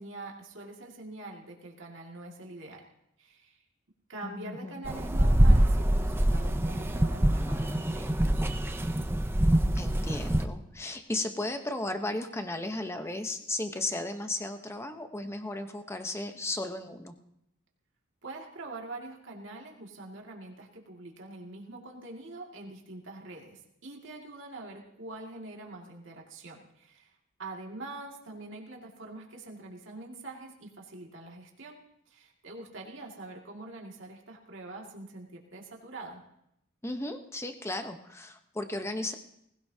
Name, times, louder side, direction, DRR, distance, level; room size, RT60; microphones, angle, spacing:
voice 1, 0.0-2.8 3.2-3.6 4.1-8.5 18.2-27.1 27.4-31.8 32.1-36.2, right 2 dB, 65° right, 0 dB, 2.1 m, -44 dB
voice 2, 4.2-4.8 9.7-17.1 36.8-39.1, left 2 dB, 15° left, 7 dB, 0.9 m, -35 dB
sound 1, 4.8-10.4, right 1 dB, 10° right, 0.5 m, -25 dB
19.5 x 16.5 x 2.8 m, 0.78 s
head